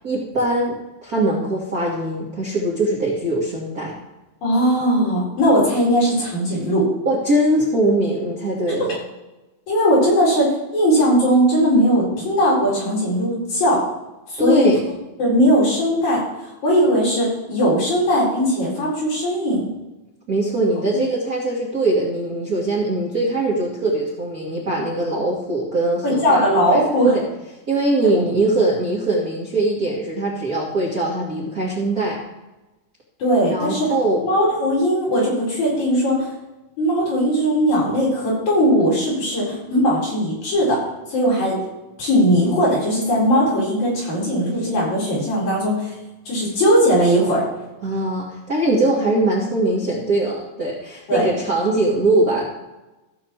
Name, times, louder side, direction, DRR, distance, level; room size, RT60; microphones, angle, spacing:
voice 1, 0.0-0.8 1.0-4.0 7.0-9.0 14.4-14.9 20.3-27.2 27.7-32.2 33.5-34.2 47.8-52.4, right 1 dB, 35° right, -4 dB, 1.7 m, -21 dB
voice 2, 4.4-6.8 9.7-13.8 14.3-14.7 15.2-16.2 16.6-19.7 20.9-21.0 26.0-27.1 33.2-33.9 34.2-36.3 36.8-40.8 41.1-41.6 42.0-45.9 46.3-47.4 51.1-51.3, equal, 60° left, -6 dB, 5.9 m, -19 dB
15.0 x 7.1 x 4.7 m, 1.0 s
omnidirectional pair, 3.7 m